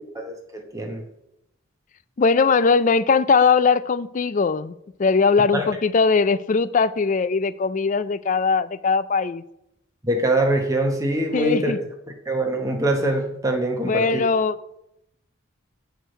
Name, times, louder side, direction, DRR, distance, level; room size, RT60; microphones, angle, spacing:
voice 1, 0.1-1.0 5.5-5.6 10.0-11.7 12.3-14.3, right 1 dB, 15° right, 1.0 m, -23 dB
voice 2, 2.2-4.7 5.0-9.4 11.3-11.8 13.8-14.6, left 5 dB, 40° left, 0.4 m, -20 dB
8.2 x 4.6 x 6.5 m
head